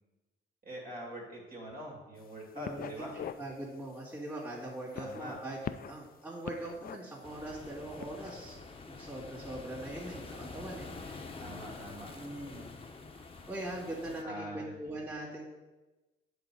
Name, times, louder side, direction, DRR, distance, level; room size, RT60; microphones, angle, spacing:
voice 1, 0.6-3.1 5.0-5.4 11.4-12.1 14.2-14.7, equal, 50° right, -2 dB, 2.4 m, -43 dB
sound 1, 2.2-2.4 2.6-3.5 3.9-4.0 4.8-6.1 6.4-7.3 7.9-8.4, left 9 dB, 50° left, 0.4 m, -42 dB
voice 2, 2.5-8.6 8.9-11.4 12.1-12.7 13.5-15.4, right 1 dB, 10° right, -5 dB, 2.2 m, -41 dB
sound 2, 7.2-14.2, left 3 dB, 30° left, 0.8 m, -47 dB
8.0 x 3.9 x 6.0 m, 1.1 s
cardioid pair, 90°, 20 cm